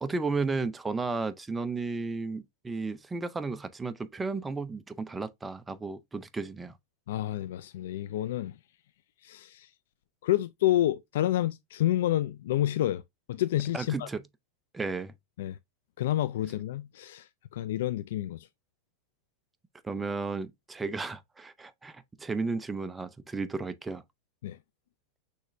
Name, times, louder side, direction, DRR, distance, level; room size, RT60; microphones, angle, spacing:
voice 1, 0.0-6.7 13.7-14.2 14.7-15.1 19.8-24.0, right 4 dB, 10° right, 0.4 m, -33 dB
voice 2, 7.1-8.6 9.2-9.7 10.2-13.0 13.3-14.1 15.4-15.6 16.0-18.5 24.4-24.6, left 13 dB, 75° left, 0.3 m, -29 dB
6.4 x 3.0 x 2.6 m
supercardioid pair, 135°, 0 cm